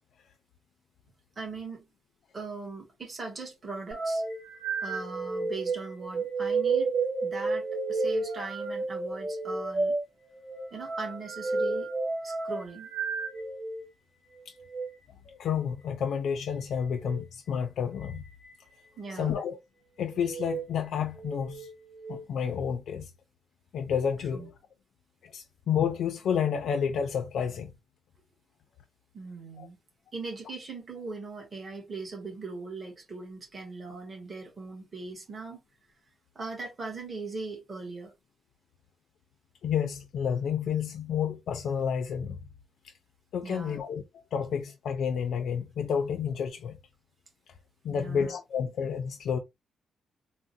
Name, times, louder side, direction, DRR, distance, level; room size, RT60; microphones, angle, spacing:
voice 1, 1.4-1.8 2.3-4.2 4.8-6.9 7.2-10.0 10.7-11.9 12.2-12.9 19.0-19.4 24.3-24.5 29.1-29.8 30.1-35.6 36.3-38.1 43.4-43.8 47.9-48.4, right 3 dB, 30° right, 1.3 m, -40 dB
sound 1, 3.9-13.8 14.6-14.9 16.9-17.2 18.0-18.5 19.1-19.4 20.2-20.7 21.1-22.2, right 3 dB, 45° right, 2.0 m, -32 dB
voice 2, 15.3-18.2 19.1-19.6 20.0-21.7 22.1-23.1 23.7-24.5 25.2-27.7 29.6-29.7 39.6-42.4 42.8-42.9 43.3-44.0 44.3-46.8 47.8-49.4, left 7 dB, 75° left, 0.4 m, -30 dB
3.7 x 2.1 x 2.6 m
cardioid pair, 140°, 0 cm